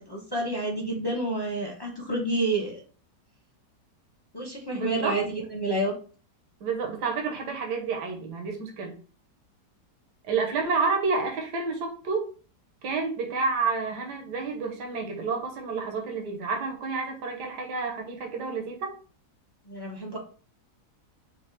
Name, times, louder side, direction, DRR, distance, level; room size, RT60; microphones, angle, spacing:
voice 1, 0.0-2.8 4.3-5.9 19.6-20.2, right 1 dB, 20° left, 0 dB, 0.7 m, -29 dB
voice 2, 4.7-5.2 6.6-9.0 10.3-12.3 12.8-18.9, right 4 dB, 75° right, 2 dB, 1.5 m, -29 dB
4.4 x 2.4 x 4.5 m, 0.40 s
omnidirectional pair, 1.8 m